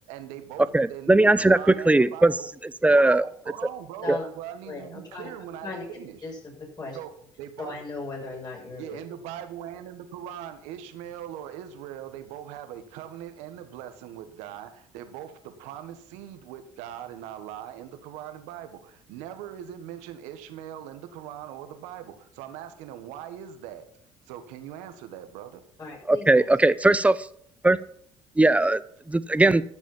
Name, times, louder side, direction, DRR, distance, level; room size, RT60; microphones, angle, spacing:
voice 1, 0.0-2.5 2.9-6.2 6.9-7.1 7.4-7.8 8.8-23.9 24.3-25.6, right 10 dB, 85° right, 9 dB, 1.5 m, -41 dB
voice 2, 0.7-2.3 2.8-3.2 4.1-4.2 26.1-27.2 27.6-27.8 28.4-28.8 29.1-29.6, right 2 dB, 10° right, 16 dB, 0.7 m, -19 dB
voice 3, 4.7-5.3 5.6-5.9 6.2-7.0 7.6-9.0 25.8-26.5, left 3 dB, 35° left, -1 dB, 7.0 m, -37 dB
13.5 x 6.3 x 7.3 m, 0.63 s
supercardioid pair, 75°, 12 cm